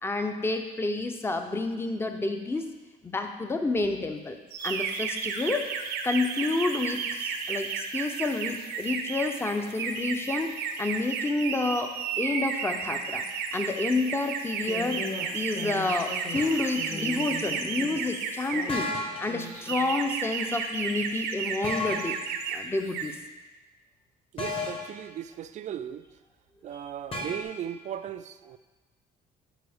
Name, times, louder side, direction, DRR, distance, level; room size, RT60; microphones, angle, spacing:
voice 1, 0.0-2.6 3.0-5.7 6.0-10.5 10.8-11.9 12.2-13.3 13.5-15.0 15.3-18.9 19.2-22.2 22.5-23.2 26.7-26.8, left 3 dB, 15° left, 6 dB, 0.6 m, -29 dB
sound 1, 4.5-18.8 19.4-22.6 22.9-23.2, right 6 dB, 80° right, 0.8 m, -33 dB
Human voice, 14.6-19.8, left 2 dB, 50° left, 1.5 m, -40 dB
sound 2, 16.4-16.6 18.7-19.5 21.6-22.2 24.4-25.0 27.1-27.4, left 2 dB, 35° left, 1.2 m, -33 dB
voice 2, 24.3-26.1 26.6-28.6, right 10 dB, 45° right, 12 dB, 0.4 m, -37 dB
11.0 x 4.7 x 3.5 m, 1.2 s
cardioid pair, 110°, 17 cm